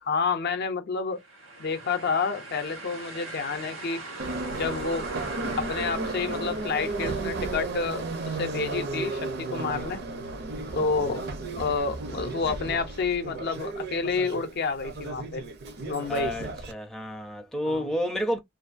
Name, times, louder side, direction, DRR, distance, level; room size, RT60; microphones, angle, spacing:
voice 1, 0.0-1.2 1.6-4.0 4.5-5.1 5.5-10.0 10.7-11.2 11.6-15.5 15.8-16.4 17.6-17.9, left 4 dB, 55° left, 0.5 m, -29 dB
sound 1, 1.2-11.0, right 2 dB, 85° right, 1.0 m, -42 dB
Subway metro underground, 4.2-16.7, right 3 dB, 55° right, 0.5 m, -34 dB
voice 2, 16.1-18.4, equal, ahead, 0.5 m, -30 dB
2.5 x 2.2 x 2.4 m
head